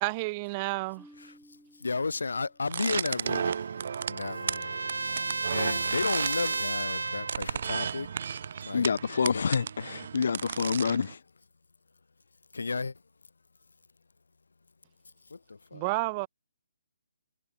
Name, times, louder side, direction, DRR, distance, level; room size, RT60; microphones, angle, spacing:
voice 1, 0.0-1.1 15.7-16.3, right 26 dB, 25° right, 0.4 m, -30 dB
Marimba xylophone, 1.0-3.0, equal, ahead, 6.4 m, -57 dB
voice 2, 1.8-3.6 4.1-5.2 5.5-8.1 8.6-8.9 9.3-9.6 12.5-12.9 15.3-15.8, left 4 dB, 90° left, 4.1 m, -33 dB
sound 1, 2.7-11.1, right 7 dB, 55° right, 2.2 m, -34 dB
Trumpet, 3.1-7.5, right 4 dB, 90° right, 0.6 m, -33 dB
voice 3, 8.7-11.2, left 6 dB, 65° left, 0.4 m, -27 dB
hypercardioid pair, 155°, 0 cm